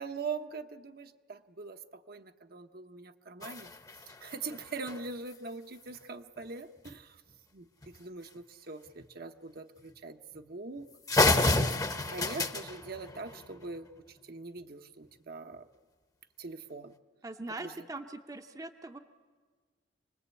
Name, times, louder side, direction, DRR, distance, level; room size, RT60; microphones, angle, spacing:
voice 1, 0.0-3.7 4.1-7.2 7.5-15.7 16.4-16.9 17.6-17.8, right 4 dB, 55° right, 0.9 m, -43 dB
sound 1, 3.4-5.4 6.8-6.9 7.3-7.4 7.8-8.0 8.9-9.0 9.8-9.9 10.4-10.5 10.8-10.9 11.1-13.8, left 2 dB, 20° left, 0.9 m, -30 dB
voice 2, 17.2-19.0, right 2 dB, 20° right, 0.8 m, -41 dB
27.0 x 20.0 x 8.3 m
head